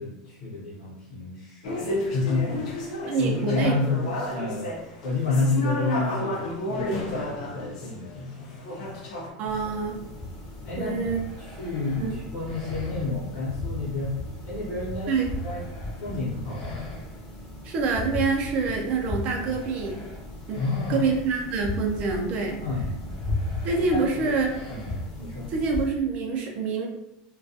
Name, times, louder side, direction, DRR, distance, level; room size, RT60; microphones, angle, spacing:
voice 1, 0.0-4.7 5.0-9.6 10.6-11.0 11.4-14.1 14.4-15.1 15.4-15.6 16.0-16.9 20.5-21.1 22.6-23.2 23.8-24.3 24.7-25.5, left 3 dB, 55° left, -10 dB, 0.8 m, -30 dB
sound 1, 1.6-9.3, left 1 dB, 90° left, 0.6 m, -31 dB
voice 2, 3.1-3.8 9.4-10.0 10.8-11.2 12.0-12.1 15.1-15.3 17.6-20.0 20.5-20.6 20.9-22.6 23.6-24.6 25.5-26.9, right 4 dB, 40° right, 1 dB, 0.5 m, -26 dB
sound 2, 9.5-25.9, left 1 dB, 20° left, 0.6 m, -36 dB
2.3 x 2.2 x 2.7 m, 0.83 s
supercardioid pair, 155°, 4 cm